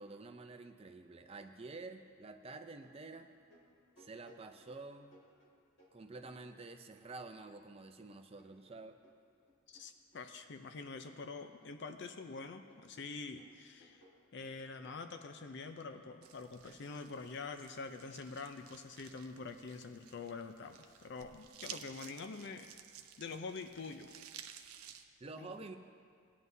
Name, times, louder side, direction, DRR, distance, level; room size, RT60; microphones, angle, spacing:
voice 1, 0.0-3.3 4.0-5.2 5.9-9.0 25.2-25.8, right 3 dB, 25° right, 6 dB, 0.5 m, -49 dB
sound 1, 2.8-7.0 7.3-10.3 10.6-11.3 11.6-17.5, equal, 85° left, 2.5 m, -66 dB
voice 2, 9.7-14.0 14.3-22.7 23.2-24.1, left 4 dB, 55° left, 8 dB, 0.5 m, -46 dB
sound 2, 16.2-25.0, right 9 dB, 90° right, 0.6 m, -54 dB
18.5 x 9.4 x 2.7 m, 2.2 s
head